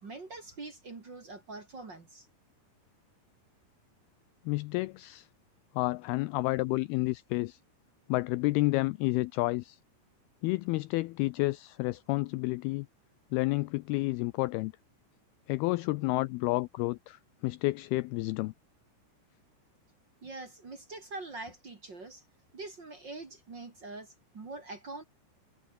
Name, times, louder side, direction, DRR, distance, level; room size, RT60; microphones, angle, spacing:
voice 1, 0.0-2.3 20.2-22.2 22.5-25.0, right 3 dB, 30° right, 2.4 m, -44 dB
voice 2, 4.5-5.3 5.8-7.6 8.1-9.8 10.4-12.9 13.3-14.7 15.5-18.5, left 21 dB, 90° left, 2.2 m, -30 dB
omnidirectional pair, 5.0 m